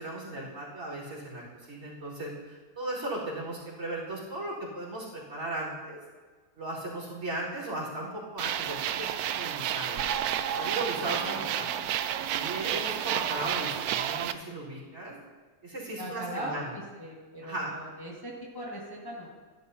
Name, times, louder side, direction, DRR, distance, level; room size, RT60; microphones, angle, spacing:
voice 1, 0.0-1.4 1.7-6.0 6.6-10.0 10.5-11.7 12.3-15.1 15.6-16.7 17.4-17.7, right 2 dB, 50° right, -6 dB, 4.5 m, -36 dB
sound 1, 8.4-14.3, right 10 dB, 75° right, 1.0 m, -31 dB
voice 2, 11.1-11.8 16.0-19.3, right 1 dB, 15° left, -5 dB, 1.7 m, -39 dB
16.0 x 11.5 x 2.8 m, 1.5 s
omnidirectional pair, 1.8 m